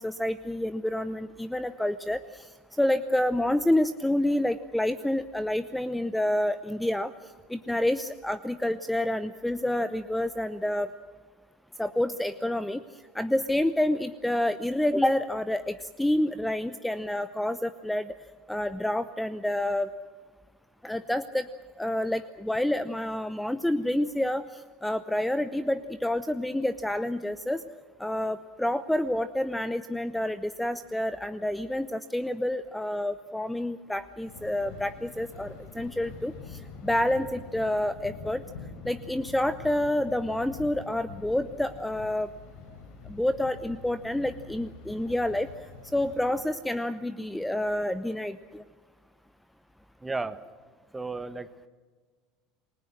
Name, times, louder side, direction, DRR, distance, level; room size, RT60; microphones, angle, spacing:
voice 1, 0.0-2.5 2.8-7.1 7.5-10.9 11.8-12.8 13.1-18.2 18.5-19.9 20.8-21.5 21.8-27.6 28.0-38.4 38.8-42.3 43.1-45.5 45.9-48.6, left 1 dB, 5° left, 13 dB, 0.8 m, -28 dB
Thunder, 34.3-46.4, left 5 dB, 65° left, 3.8 m, -45 dB
voice 2, 50.0-50.4 50.9-51.7, right 3 dB, 15° right, 12 dB, 1.5 m, -34 dB
29.0 x 21.0 x 6.3 m, 1.5 s
hypercardioid pair, 75°, 0 cm